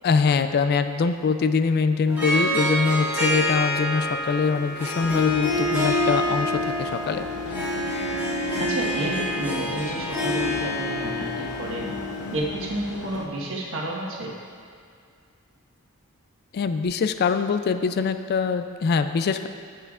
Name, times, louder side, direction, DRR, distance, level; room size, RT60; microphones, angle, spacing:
voice 1, 0.0-7.2 16.5-19.5, left 5 dB, 50° left, 9 dB, 0.3 m, -23 dB
Harp, 2.1-12.4, left 1 dB, 10° right, 1.9 m, -27 dB
sound 1, 5.0-13.3, left 3 dB, 85° left, 0.6 m, -38 dB
voice 2, 8.6-11.9 12.3-14.3, right 1 dB, 65° right, -2 dB, 1.3 m, -30 dB
15.0 x 5.6 x 2.4 m, 2.2 s
head